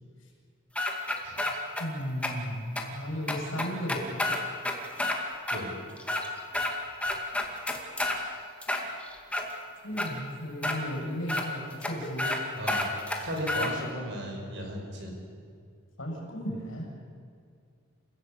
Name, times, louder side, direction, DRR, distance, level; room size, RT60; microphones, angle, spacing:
sound 1, 0.8-1.8 2.2-2.3 2.8-2.9 3.3-5.2 5.5-5.6 6.0-6.7 7.0-8.2 8.6-9.5 10.0-10.1 10.6-10.8 11.3-11.4 11.8-11.9 12.2-12.4 12.7-13.7, left 1 dB, 5° left, 2.2 m, -29 dB
voice 1, 1.2-1.6 5.5-5.8 8.2-8.4 12.5-15.2, equal, 60° right, 2 dB, 5.7 m, -36 dB
voice 2, 1.8-4.2 9.8-12.4 16.0-16.9, equal, 75° left, 0 dB, 7.2 m, -35 dB
29.0 x 16.0 x 8.4 m, 2.3 s
head